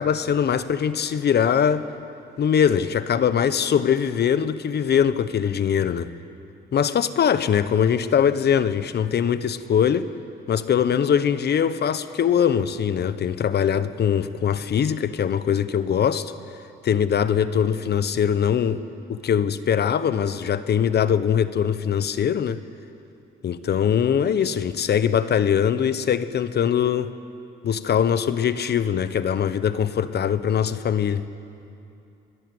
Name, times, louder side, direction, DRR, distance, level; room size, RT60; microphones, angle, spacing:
voice 1, 0.0-1.9 2.4-6.1 6.7-10.1 10.5-16.3 16.8-18.8 19.1-22.6 23.4-27.1 27.6-31.3, left 8 dB, 55° left, 13 dB, 1.2 m, -22 dB
27.5 x 21.0 x 8.1 m, 2.7 s
cardioid pair, 90°, 20 cm